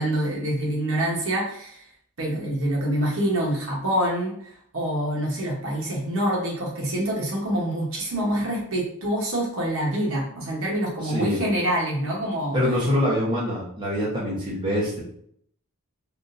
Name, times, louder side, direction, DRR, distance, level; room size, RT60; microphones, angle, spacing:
voice 1, 0.0-1.9 2.2-12.6, right 1 dB, 65° right, -3 dB, 1.0 m, -26 dB
voice 2, 11.0-11.4 12.5-15.0, left 1 dB, 20° right, -7 dB, 0.9 m, -24 dB
3.6 x 2.5 x 2.6 m, 0.67 s
head